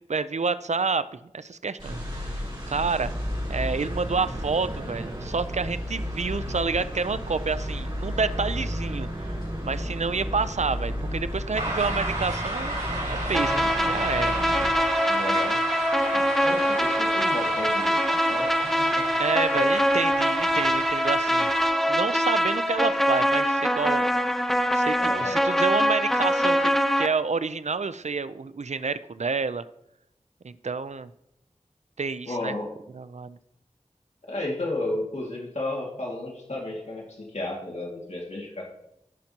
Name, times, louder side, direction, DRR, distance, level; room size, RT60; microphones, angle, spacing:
voice 1, 0.1-1.1 1.3-3.1 3.5-9.3 9.6-12.8 13.1-14.3 19.2-21.5 21.9-24.1 24.7-26.7 27.0-29.6 30.4-31.1 32.0-32.5 32.9-33.4, right 4 dB, 65° right, 14 dB, 0.5 m, -29 dB
sound 1, 1.8-14.7, equal, 40° right, 3.7 m, -32 dB
sound 2, 11.5-21.7, right 1 dB, 90° right, 3.9 m, -33 dB
sound 3, 13.3-27.1, equal, ahead, 0.8 m, -23 dB
voice 2, 15.1-15.6 16.0-19.1 25.0-25.4 32.3-32.7 34.3-38.6, left 2 dB, 60° left, -2 dB, 2.1 m, -33 dB
15.5 x 5.9 x 2.9 m, 0.83 s
wide cardioid pair, 40°, 13 cm